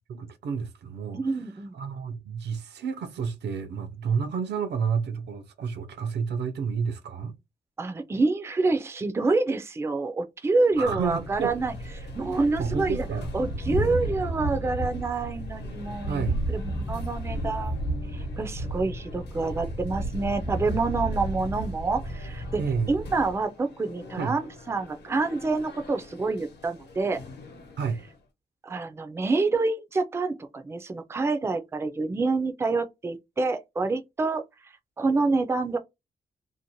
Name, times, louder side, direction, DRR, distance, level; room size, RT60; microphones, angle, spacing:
voice 1, 0.1-1.4 1.7-7.3 10.8-11.5 12.2-13.3 16.1-16.4 22.6-23.0 24.2-24.3 27.8-28.0, right 6 dB, 80° right, 0.6 m, -30 dB
voice 2, 1.1-1.8 7.8-13.1 13.3-17.8 18.1-22.6 22.9-27.2 28.6-34.4 35.0-35.8, right 3 dB, 15° right, 0.3 m, -27 dB
Thunder, 10.8-23.4, right 1 dB, 50° left, 0.7 m, -33 dB
sound 1, 11.0-28.3, left 4 dB, 85° left, 0.9 m, -47 dB
2.6 x 2.1 x 2.9 m
wide cardioid pair, 120°, 17 cm